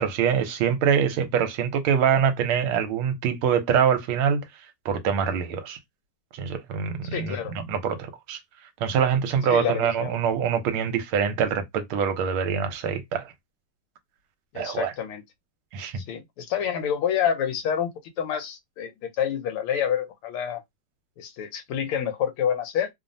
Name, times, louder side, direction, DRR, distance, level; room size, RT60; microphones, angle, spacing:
voice 1, 0.0-4.4 4.8-5.8 6.3-8.4 8.8-13.3 14.5-14.9 15.7-15.9, right 7 dB, 75° right, 1.5 m, -24 dB
voice 2, 7.0-7.5 9.5-10.2 14.5-15.2 15.9-17.9 18.2-20.6 21.2-22.9, left 8 dB, 80° left, 1.5 m, -28 dB
3.6 x 2.0 x 2.5 m
omnidirectional pair, 2.4 m